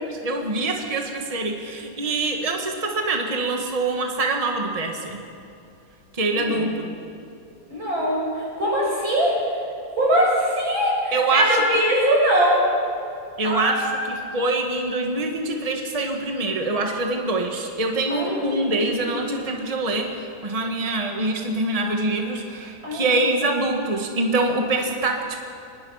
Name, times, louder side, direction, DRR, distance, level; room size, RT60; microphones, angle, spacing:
voice 1, 0.0-5.3 6.1-6.9 11.1-11.6 13.4-25.4, right 2 dB, 20° right, 2 dB, 1.8 m, -25 dB
voice 2, 6.3-6.7 7.7-9.6 10.0-12.7 13.4-14.0 18.1-19.2 22.8-23.2, equal, 90° right, -4 dB, 7.1 m, -22 dB
24.0 x 20.5 x 5.8 m, 2.7 s
omnidirectional pair, 2.1 m